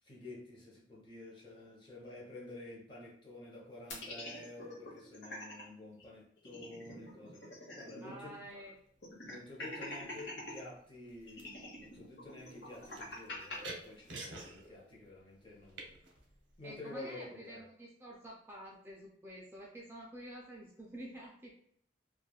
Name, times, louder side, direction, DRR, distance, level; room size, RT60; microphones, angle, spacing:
voice 1, 0.0-8.4 9.2-16.0 16.6-17.7, left 2 dB, 25° left, -3 dB, 0.8 m, -50 dB
sound 1, 3.9-5.6 6.0-6.1 6.4-8.1 8.4-8.5 9.0-10.6 11.3-13.6, left 1 dB, 65° left, 1.0 m, -45 dB
voice 2, 8.0-8.7 16.6-21.5, right 1 dB, 10° right, -4 dB, 0.3 m, -49 dB
sound 2, 8.5-8.9 9.8-10.3 10.6-16.8, right 2 dB, 75° right, 0.7 m, -51 dB
3.1 x 2.3 x 2.3 m, 0.65 s
head